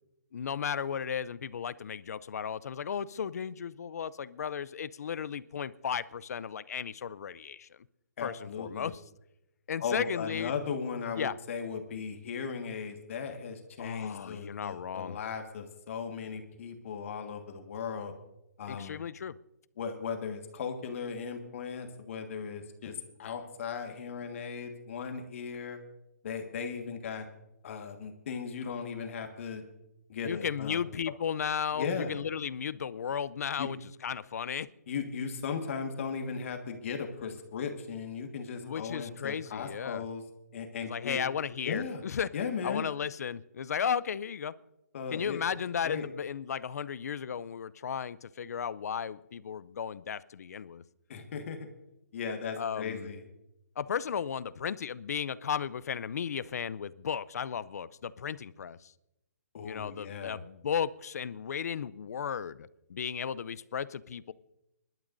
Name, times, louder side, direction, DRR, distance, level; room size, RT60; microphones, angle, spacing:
voice 1, 0.3-7.8 8.2-9.0 9.7-10.5 11.2-11.4 13.8-15.2 18.7-19.3 30.2-34.7 38.6-40.0 40.9-42.3 42.6-44.5 45.1-50.8 52.6-53.1 53.8-58.9 59.6-64.3, left 7 dB, 70° left, 19 dB, 0.5 m, -35 dB
voice 2, 8.2-8.9 9.8-18.1 18.6-19.0 19.8-25.8 26.2-27.3 27.6-29.6 30.1-30.8 31.7-32.1 33.6-33.7 34.9-40.2 40.5-41.2 41.6-42.0 42.3-42.8 44.9-45.4 45.8-46.0 51.1-51.7 52.1-53.2 59.5-60.4, left 6 dB, 50° left, 5 dB, 1.6 m, -37 dB
24.5 x 12.0 x 2.6 m, 0.88 s
hypercardioid pair, 155°, 9 cm